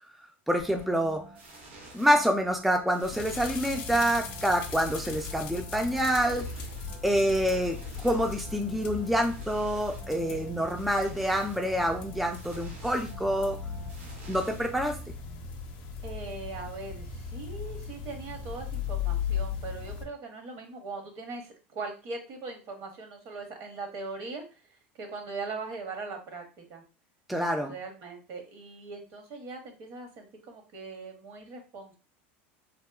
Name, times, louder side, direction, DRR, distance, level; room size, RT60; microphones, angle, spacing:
voice 1, 0.5-1.2 1.9-6.5 7.0-13.6 14.3-15.0 27.3-27.7, equal, ahead, 3 dB, 0.3 m, -27 dB
sound 1, 0.6-15.2, right 2 dB, 85° right, 1.0 m, -49 dB
sound 2, 3.0-20.0, left 6 dB, 65° left, 0.5 m, -38 dB
voice 2, 16.0-24.4 25.0-26.8 27.7-31.9, right 3 dB, 55° right, 4 dB, 0.8 m, -40 dB
2.8 x 2.1 x 2.3 m, 0.33 s
supercardioid pair, 105°, 6 cm